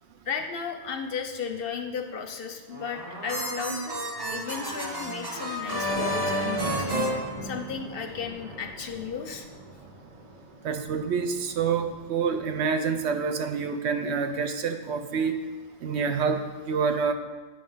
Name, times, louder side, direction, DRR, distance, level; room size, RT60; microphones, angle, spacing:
voice 1, 0.2-6.9 7.4-9.5, left 6 dB, 60° left, 5 dB, 0.7 m, -35 dB
sound 1, 2.7-8.0, equal, 25° right, 0.8 m, -31 dB
sound 2, 5.3-12.8, right 1 dB, 40° right, 1.0 m, -44 dB
voice 2, 10.6-15.3 15.8-17.1, right 5 dB, 70° right, 7 dB, 0.9 m, -27 dB
9.0 x 3.4 x 5.5 m, 1.3 s
omnidirectional pair, 1.2 m